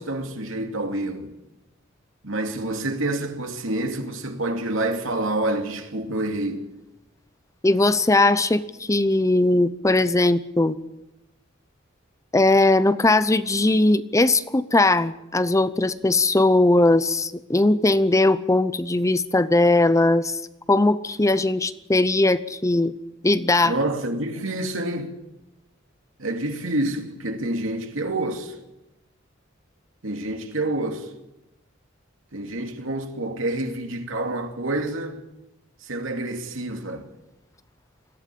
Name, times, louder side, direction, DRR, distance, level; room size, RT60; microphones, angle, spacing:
voice 1, 0.0-1.3 2.2-6.6 23.6-25.1 26.2-28.6 30.0-31.1 32.3-35.2 35.8-37.1, right 2 dB, 80° right, 2.7 m, -28 dB
voice 2, 7.6-10.8 12.3-20.4 20.7-22.9 23.2-23.8, left 2 dB, 15° left, 0.7 m, -19 dB
21.5 x 15.0 x 8.6 m
head